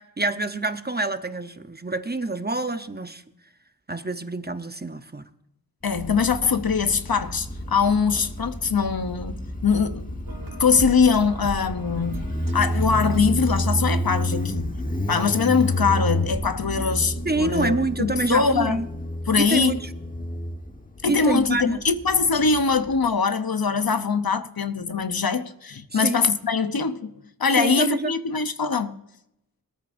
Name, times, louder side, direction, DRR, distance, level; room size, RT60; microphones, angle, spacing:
voice 1, 0.0-3.2 3.9-5.3 17.2-18.9 19.4-19.9 21.1-21.8 25.9-26.2 27.5-28.1, right 2 dB, 25° right, 0.7 m, -27 dB
voice 2, 5.8-10.1 10.6-12.2 12.5-14.7 15.1-18.8 19.3-19.8 21.0-27.1 27.4-28.9, left 5 dB, 70° left, 0.8 m, -22 dB
Motorcycle, 5.9-23.1, equal, 20° left, 1.3 m, -30 dB
sound 1, 10.3-15.2, right 2 dB, 60° right, 1.3 m, -38 dB
20.0 x 13.5 x 2.6 m
wide cardioid pair, 50°, 38 cm